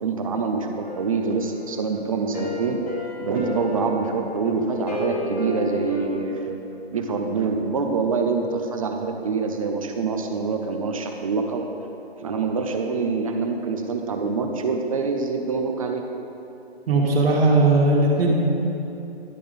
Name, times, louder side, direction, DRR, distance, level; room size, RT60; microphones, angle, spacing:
voice 1, 0.0-2.8 3.2-6.6 6.9-11.6 12.2-16.0, right 4 dB, 35° right, 4 dB, 0.4 m, -25 dB
sound 1, 0.8-6.0, left 2 dB, 40° left, 1.5 m, -33 dB
voice 2, 16.9-18.3, right 2 dB, 65° right, -2 dB, 1.7 m, -18 dB
11.0 x 3.8 x 5.1 m, 2.9 s
hypercardioid pair, 150°, 32 cm